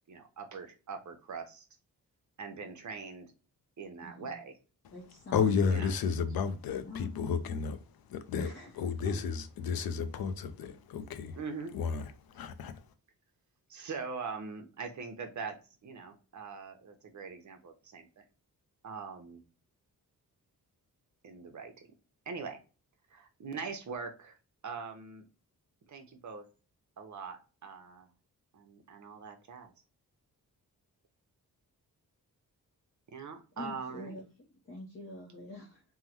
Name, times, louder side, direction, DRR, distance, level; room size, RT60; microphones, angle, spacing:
voice 1, 0.1-1.6 2.4-3.3 3.8-4.5 5.7-5.9 11.4-11.8 13.7-15.6 15.8-18.2 18.8-19.4 21.2-21.7 22.3-22.6 23.1-24.4 24.6-25.3 25.9-26.5 27.0-28.1 28.5-29.7 33.1-34.2, right 5 dB, 55° right, 0.8 m, -42 dB
voice 2, 4.0-4.4 4.9-5.8 6.8-7.8 8.3-8.7 9.0-9.3 33.6-35.8, left 2 dB, 35° left, 0.7 m, -45 dB
voice 3, 5.3-7.8 8.1-8.5 8.8-11.4 11.7-12.8, left 6 dB, 80° left, 0.5 m, -32 dB
3.6 x 2.1 x 2.8 m
wide cardioid pair, 100°, 36 cm